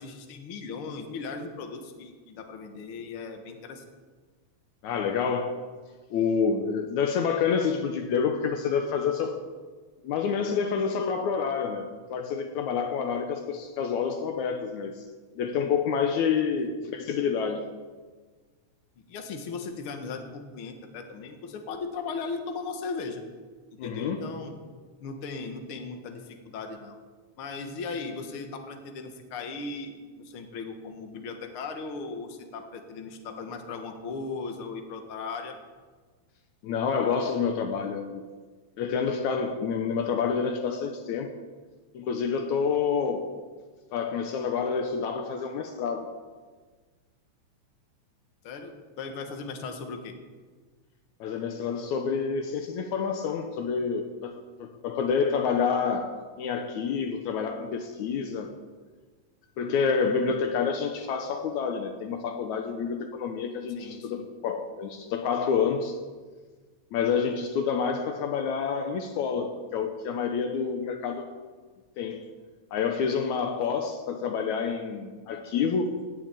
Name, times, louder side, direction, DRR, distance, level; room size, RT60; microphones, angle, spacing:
voice 1, 0.0-3.8 19.0-23.2 23.8-24.5 25.0-27.0 27.4-35.6 48.4-50.1 63.7-64.3, left 4 dB, 50° left, 5 dB, 2.1 m, -37 dB
voice 2, 4.8-5.6 6.1-9.4 10.0-15.1 15.4-17.7 23.8-24.3 36.6-38.2 38.8-41.4 41.9-43.3 43.9-46.1 51.2-58.5 59.6-66.0 66.9-71.3 72.0-72.3 72.7-76.0, left 6 dB, 75° left, 6 dB, 2.3 m, -28 dB
16.5 x 7.2 x 9.0 m, 1.4 s
omnidirectional pair, 3.5 m